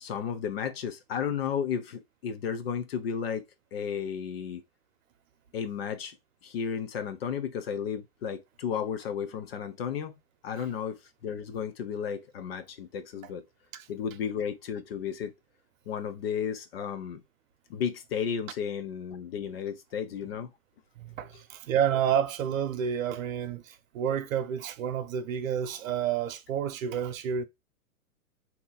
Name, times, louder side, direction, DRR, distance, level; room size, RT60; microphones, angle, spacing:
voice 1, 0.0-3.4 3.7-4.6 5.5-6.1 6.4-10.1 10.4-13.4 13.9-15.3 15.9-17.2 17.7-20.5, left 7 dB, 45° left, 0.5 m, -33 dB
voice 2, 21.0-27.4, right 8 dB, 60° right, 0.8 m, -30 dB
2.8 x 2.5 x 3.9 m
hypercardioid pair, 145°, 44 cm